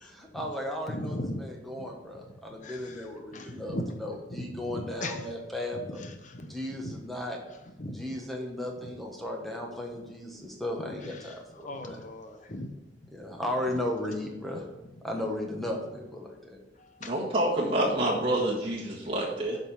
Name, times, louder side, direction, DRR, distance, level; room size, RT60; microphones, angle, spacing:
voice 1, 0.0-6.0 6.5-7.4 7.9-12.0 13.1-14.6 15.0-16.6, left 1 dB, ahead, 0 dB, 1.4 m, -35 dB
voice 2, 0.9-1.4 2.6-3.0 3.3-4.0 4.7-5.2 6.0-6.5 6.8-6.9 7.8-7.9 11.2-11.3 11.6-12.7 17.0-17.1, left 1 dB, 45° left, 6 dB, 1.0 m, -37 dB
voice 3, 17.0-19.6, right 1 dB, 35° right, -6 dB, 1.6 m, -27 dB
7.6 x 5.3 x 5.8 m, 1.0 s
head